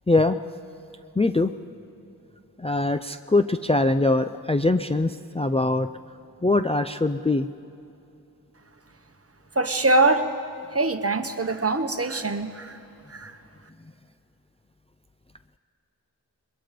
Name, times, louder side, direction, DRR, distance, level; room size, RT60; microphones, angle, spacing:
voice 1, 0.1-0.4 1.2-1.5 2.6-5.9 6.4-7.5, left 2 dB, 15° left, 8 dB, 0.5 m, -22 dB
voice 2, 9.5-10.3 10.7-12.8 13.1-13.3, right 2 dB, 35° right, 7 dB, 1.3 m, -23 dB
28.0 x 22.5 x 5.2 m, 2.8 s
wide cardioid pair, 75°, 39 cm